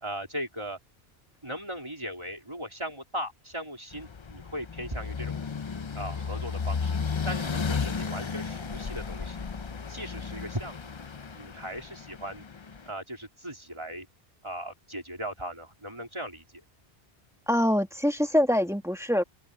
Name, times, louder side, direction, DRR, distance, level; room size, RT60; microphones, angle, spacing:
voice 1, 0.0-0.8 1.4-5.3 6.0-7.0 7.3-9.5 9.9-10.9 11.3-12.4 12.9-14.1 14.4-16.4, equal, 25° right, 3.8 m, -38 dB
sound 1, 3.9-12.9, left 5 dB, 35° left, 0.5 m, -34 dB
voice 2, 17.5-19.2, equal, 5° right, 1.7 m, -24 dB
open air
omnidirectional pair, 1.1 m